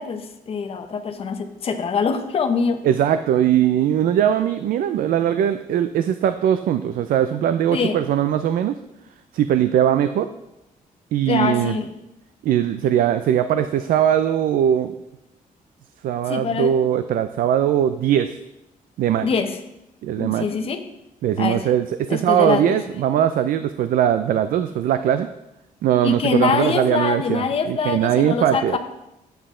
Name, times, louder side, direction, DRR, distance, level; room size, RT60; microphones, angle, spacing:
voice 1, 0.0-2.8 7.7-8.0 11.3-11.9 16.3-16.8 19.2-19.6 20.2-20.8 21.4-21.7 22.1-22.8 26.0-28.8, left 5 dB, 40° left, 6 dB, 0.9 m, -24 dB
voice 2, 2.8-8.7 9.3-10.3 11.1-11.7 12.4-15.0 16.0-18.3 19.0-19.3 20.0-20.5 21.2-25.3 25.8-28.8, right 10 dB, 75° right, 11 dB, 0.4 m, -20 dB
10.5 x 7.9 x 3.7 m, 0.90 s
cardioid pair, 160°, 15 cm